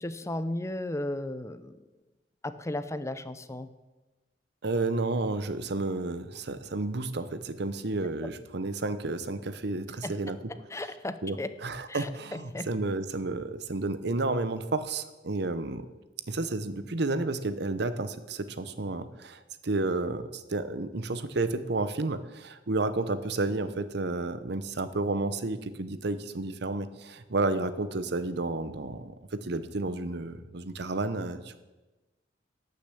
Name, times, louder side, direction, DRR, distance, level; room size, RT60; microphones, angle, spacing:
voice 1, 0.0-1.7 2.4-3.7 8.2-8.3 10.0-10.1 10.7-11.5 11.9-12.7, left 1 dB, 15° left, 11 dB, 0.6 m, -35 dB
voice 2, 4.6-10.4 11.2-15.9 16.3-31.6, right 2 dB, 65° right, 12 dB, 0.8 m, -31 dB
12.0 x 6.7 x 8.3 m, 1.1 s
head